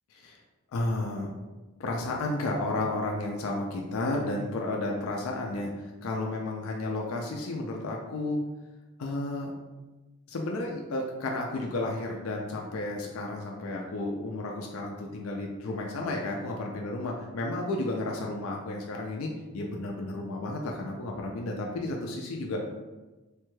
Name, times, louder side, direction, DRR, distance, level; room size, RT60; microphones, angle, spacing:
voice 1, 0.7-1.3 1.8-8.4 9.0-9.5 10.3-22.6, left 2 dB, 80° left, 0 dB, 0.4 m, -32 dB
3.2 x 2.2 x 3.1 m, 1.2 s
head